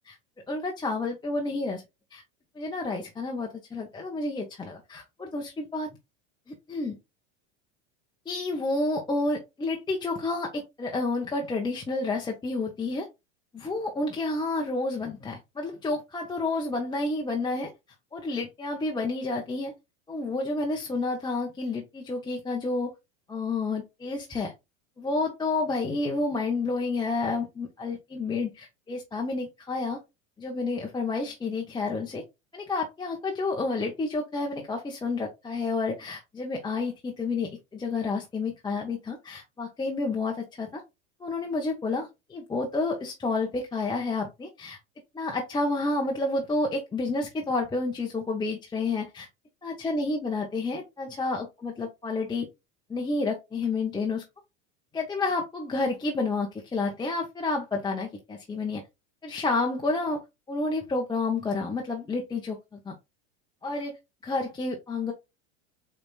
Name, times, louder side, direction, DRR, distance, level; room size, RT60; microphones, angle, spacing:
voice 1, 0.5-1.8 2.1-2.2 2.6-5.9 6.5-7.0 8.3-13.1 13.5-17.7 18.1-19.7 20.1-22.9 23.3-24.5 25.0-30.0 30.4-32.2 32.5-40.8 41.2-44.8 45.1-49.3 49.6-52.5 52.9-54.2 54.9-58.8 59.2-60.2 60.5-62.9 63.6-63.9 64.2-65.1, left 3 dB, 10° left, 0 dB, 0.7 m, -30 dB
4.9 x 3.3 x 2.3 m, 0.23 s
supercardioid pair, 110°, 36 cm